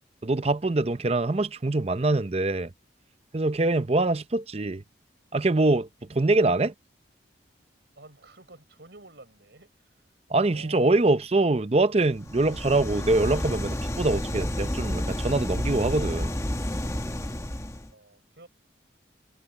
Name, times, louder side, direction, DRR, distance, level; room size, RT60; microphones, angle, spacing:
voice 1, 0.2-2.7 3.3-4.8 5.3-6.7 10.3-16.3, right 2 dB, 35° right, 0.7 m, -24 dB
voice 2, 8.0-11.0 17.9-18.5, right 2 dB, 70° right, 5.5 m, -50 dB
sound 1, 12.2-17.9, left 1 dB, 15° left, 1.1 m, -30 dB
head